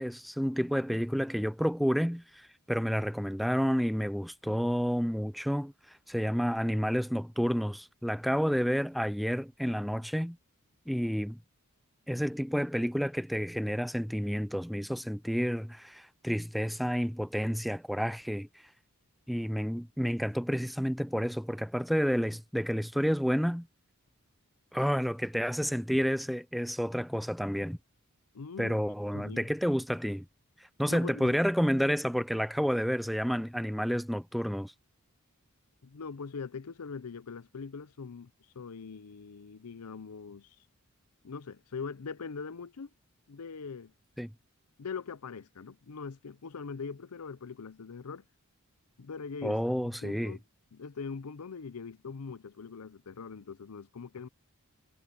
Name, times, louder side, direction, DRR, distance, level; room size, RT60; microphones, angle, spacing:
voice 1, 0.0-10.4 10.9-11.4 12.1-18.5 19.3-23.7 24.7-27.8 28.6-30.3 30.8-34.7 44.2-44.3 49.4-50.4, equal, ahead, 0.3 m, -30 dB
voice 2, 28.3-28.8 29.1-29.5 30.9-31.4 35.8-40.6 41.2-42.9 43.3-43.9 44.8-48.2 49.0-50.4 50.7-54.3, left 5 dB, 85° left, 0.6 m, -42 dB
head